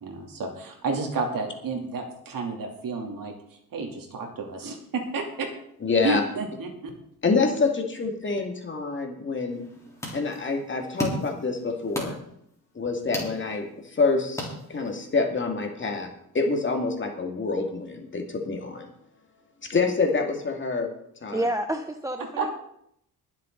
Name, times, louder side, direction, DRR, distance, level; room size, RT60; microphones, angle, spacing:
voice 1, 0.0-3.3 3.7-5.5 6.0-6.9 22.4-22.5, right 3 dB, 60° right, 2 dB, 3.1 m, -31 dB
voice 2, 5.8-6.2 7.2-9.6 10.1-12.2 12.7-18.9 19.6-20.9 21.2-21.4, left 4 dB, 30° left, 2 dB, 2.3 m, -27 dB
sound 1, 9.5-15.2, equal, 10° left, 3.7 m, -37 dB
voice 3, 21.3-22.5, right 1 dB, 10° right, 7 dB, 0.6 m, -29 dB
22.5 x 7.7 x 4.0 m, 0.72 s
cardioid pair, 125°, 37 cm